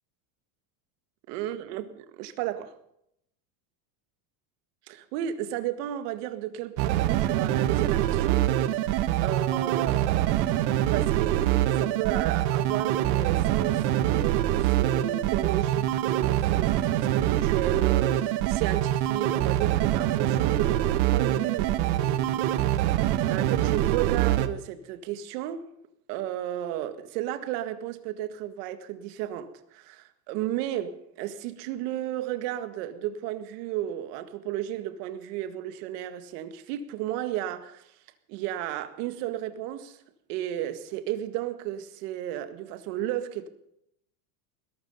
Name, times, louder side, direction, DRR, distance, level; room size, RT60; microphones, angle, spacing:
voice 1, 1.3-2.7 4.9-8.4 8.8-10.5 10.7-22.4 23.3-25.7 26.1-37.8 38.3-40.0 40.3-43.5, right 12 dB, 65° right, 1.9 m, -33 dB
sound 1, 6.8-24.5, right 13 dB, 85° right, 1.5 m, -25 dB
20.5 x 12.5 x 5.5 m
supercardioid pair, 155°, 50 cm